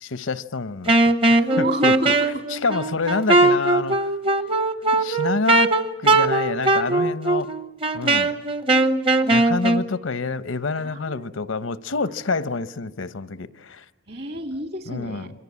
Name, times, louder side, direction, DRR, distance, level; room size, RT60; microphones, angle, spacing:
voice 1, 0.0-1.9 2.5-4.1 5.0-5.7 6.0-7.5 7.9-8.3 9.3-13.8 14.9-15.3, left 4 dB, 90° left, 0.9 m, -27 dB
Wind instrument woodwind instrument, 0.9-9.9, right 2 dB, 25° right, 0.8 m, -20 dB
voice 2, 1.5-2.4 4.3-4.5 4.9-5.0 8.0-8.3 9.2-9.3 10.7-11.4 14.1-15.3, right 1 dB, 50° right, 2.1 m, -31 dB
27.0 x 23.5 x 8.5 m
head